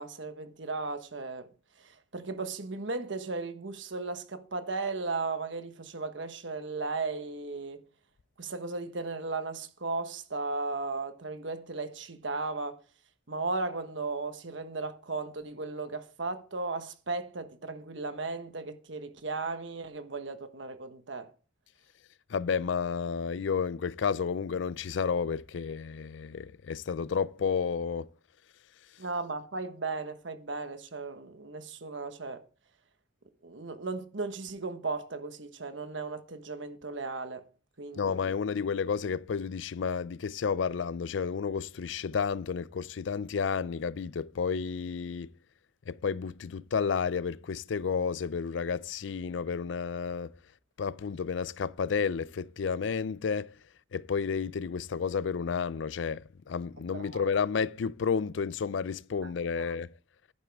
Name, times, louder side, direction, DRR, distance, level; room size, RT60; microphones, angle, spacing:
voice 1, 0.0-1.5 1.8-7.8 8.4-12.8 13.3-21.3 29.0-32.4 33.4-37.5 37.8-38.1 56.9-57.3 59.2-59.3 59.6-59.8, right 3 dB, 75° right, 1.3 m, -36 dB
voice 2, 22.3-28.1 38.0-45.3 45.9-50.4 50.8-53.6 53.9-59.9, left 6 dB, 75° left, 0.4 m, -31 dB
11.0 x 9.7 x 3.5 m
head